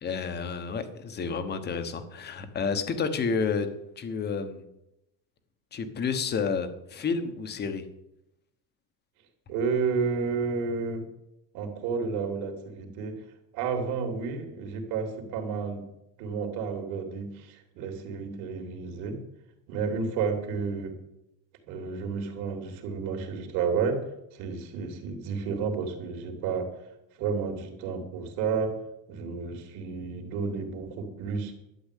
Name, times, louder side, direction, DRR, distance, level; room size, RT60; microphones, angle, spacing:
voice 1, 0.0-3.7 4.0-4.7 5.7-7.8, left 5 dB, 25° left, 9 dB, 1.2 m, -30 dB
voice 2, 9.5-11.0 11.5-13.2 13.5-15.9 16.2-19.2 19.7-21.0 21.6-24.0 24.3-26.7 27.2-28.7 29.1-31.5, right 5 dB, 60° right, 4 dB, 3.3 m, -31 dB
12.0 x 9.5 x 8.4 m, 0.87 s
cardioid pair, 170°, 42 cm